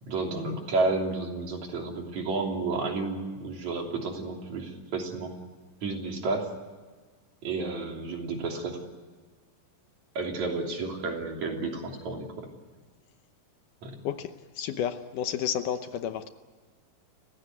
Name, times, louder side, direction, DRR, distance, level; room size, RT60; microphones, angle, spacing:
voice 1, 0.0-5.3 5.8-6.5 7.4-8.8 10.2-12.5 13.8-13.9, right 3 dB, 55° right, 2 dB, 4.4 m, -31 dB
voice 2, 14.0-16.3, left 9 dB, 70° left, 9 dB, 2.3 m, -31 dB
30.0 x 16.0 x 9.4 m, 1.4 s
omnidirectional pair, 4.1 m